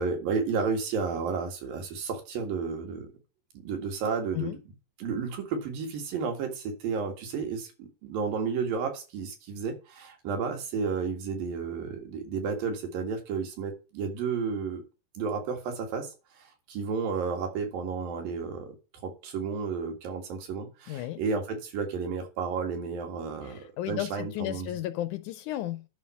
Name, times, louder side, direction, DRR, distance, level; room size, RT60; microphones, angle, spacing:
voice 1, 0.0-3.1 3.5-4.6 5.0-14.9 15.2-18.8 19.0-24.8, right 5 dB, 85° right, 3.7 m, -32 dB
voice 2, 20.9-21.2 23.5-25.9, left 14 dB, 75° left, 1.9 m, -33 dB
11.0 x 4.1 x 7.2 m
omnidirectional pair, 4.0 m